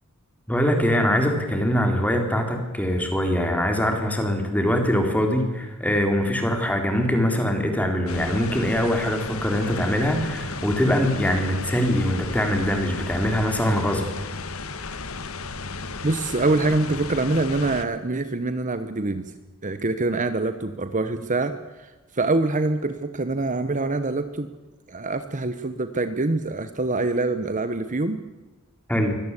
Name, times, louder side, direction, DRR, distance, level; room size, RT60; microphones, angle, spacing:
voice 1, 0.5-14.1 28.9-29.2, equal, 5° left, 4 dB, 3.8 m, -23 dB
sound 1, 8.1-17.8, left 4 dB, 70° left, 1.5 m, -34 dB
voice 2, 16.0-19.3 19.6-21.5 21.8-24.5 24.9-28.2, right 2 dB, 35° right, 10 dB, 1.1 m, -25 dB
24.5 x 17.5 x 8.3 m, 1.2 s
head